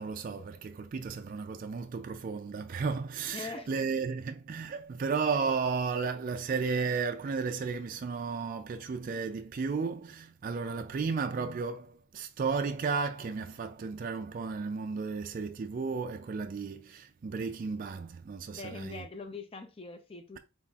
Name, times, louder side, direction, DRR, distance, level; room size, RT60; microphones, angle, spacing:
voice 1, 0.0-19.0, right 5 dB, 40° right, 0.3 m, -33 dB
voice 2, 3.3-3.7 18.5-20.4, left 3 dB, 25° left, 0.5 m, -42 dB
4.1 x 4.1 x 2.3 m
head